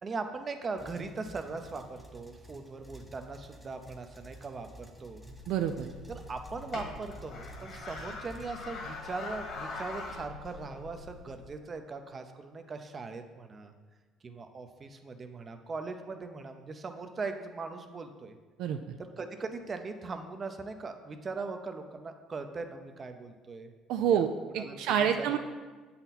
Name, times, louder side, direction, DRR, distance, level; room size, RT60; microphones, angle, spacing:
voice 1, 0.0-5.2 6.1-13.7 14.2-18.4 19.0-23.7 24.0-24.2 24.6-25.4, right 4 dB, 35° right, 7 dB, 0.6 m, -40 dB
sound 1, 0.8-8.5, equal, ahead, 0.8 m, -51 dB
sound 2, 5.2-11.5, left 3 dB, 55° left, 1.7 m, -43 dB
voice 2, 5.5-5.9 18.6-18.9 23.9-24.3 24.5-25.4, right 9 dB, 75° right, 6 dB, 0.3 m, -28 dB
7.7 x 4.2 x 4.1 m, 1.4 s
supercardioid pair, 90°, 0 cm